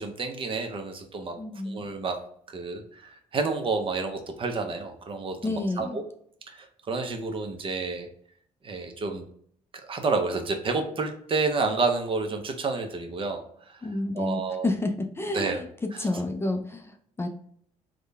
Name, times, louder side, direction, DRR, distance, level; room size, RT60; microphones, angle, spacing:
voice 1, 0.0-1.4 1.6-2.2 2.5-6.0 6.5-8.1 8.6-9.3 9.9-13.4 13.7-13.9 14.1-14.7 15.3-15.6 15.9-16.0, right 4 dB, 40° right, 5 dB, 0.7 m, -30 dB
voice 2, 1.4-1.9 5.4-6.0 13.8-17.3, left 2 dB, 20° left, 4 dB, 0.4 m, -30 dB
3.7 x 2.2 x 3.2 m, 0.63 s
cardioid pair, 85°, 14 cm